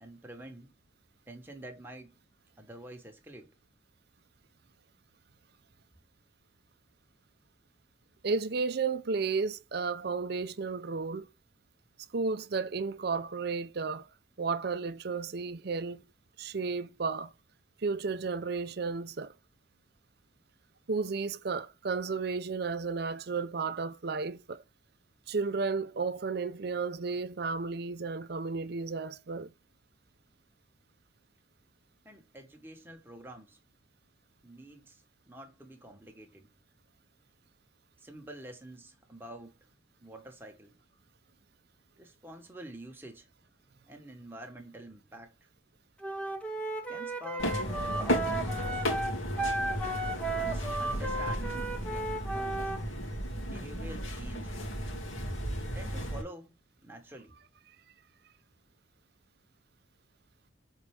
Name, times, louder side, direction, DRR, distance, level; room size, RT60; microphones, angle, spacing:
voice 1, 0.0-0.7 1.3-2.1 2.6-3.5 32.0-33.6 34.4-36.5 38.0-39.5 40.0-40.7 42.0-43.3 43.9-45.3 46.9-47.5 47.9-48.9 50.3-52.7 53.5-54.5 55.7-56.5 56.8-57.3, right 1 dB, 10° right, 1.3 m, -48 dB
voice 2, 8.2-11.3 12.1-14.1 14.4-16.0 16.4-17.3 17.8-19.3 20.9-24.6 25.3-29.5, right 4 dB, 50° right, 0.5 m, -33 dB
Wind instrument woodwind instrument, 46.0-52.8, right 2 dB, 5° left, 0.9 m, -34 dB
sound 1, 47.4-56.2, equal, 80° left, 2.6 m, -34 dB
6.6 x 4.5 x 3.3 m
head